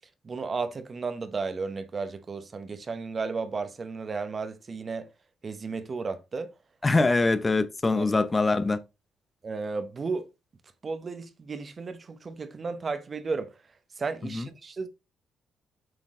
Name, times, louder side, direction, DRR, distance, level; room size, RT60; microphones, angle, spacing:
voice 1, 0.2-5.1 5.4-6.5 7.0-7.1 7.9-8.1 9.4-10.3 10.8-13.5 14.0-14.9, right 4 dB, 35° right, 0.9 m, -33 dB
voice 2, 6.8-8.8 14.3-14.5, left 3 dB, 25° left, 0.6 m, -23 dB
7.8 x 4.5 x 3.7 m
cardioid pair, 90°, 0 cm